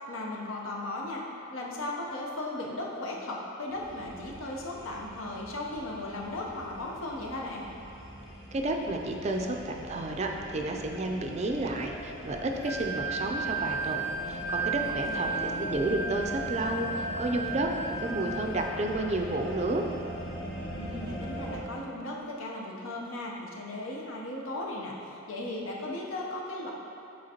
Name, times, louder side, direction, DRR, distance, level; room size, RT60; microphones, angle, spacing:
voice 1, 0.1-1.2 1.5-7.7 15.0-15.7 20.7-26.7, left 2 dB, 90° left, -2 dB, 0.8 m, -37 dB
sound 1, 3.7-21.6, equal, 25° left, 1.1 m, -41 dB
voice 2, 8.5-19.9, right 2 dB, 35° right, 2 dB, 0.4 m, -31 dB
Wind instrument woodwind instrument, 12.6-18.8, right 4 dB, 55° left, 0.8 m, -34 dB
7.7 x 4.3 x 2.9 m, 2.7 s
head